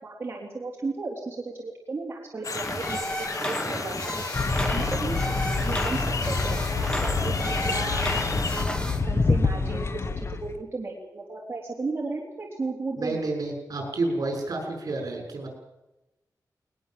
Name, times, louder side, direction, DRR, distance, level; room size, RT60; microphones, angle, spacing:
voice 1, 0.0-3.0 3.5-4.1 4.6-5.2 5.4-13.4, right 3 dB, 35° right, -2 dB, 3.6 m, -35 dB
sound 1, 2.4-8.7, left 4 dB, 55° left, 1.8 m, -34 dB
sound 2, 2.5-9.0, equal, 15° left, 2.7 m, -32 dB
sound 3, 4.3-10.6, left 3 dB, 40° left, 1.3 m, -27 dB
voice 2, 13.0-15.5, right 2 dB, 60° right, 3 dB, 6.6 m, -30 dB
21.0 x 21.0 x 7.7 m, 1.0 s
wide cardioid pair, 130°, 7 cm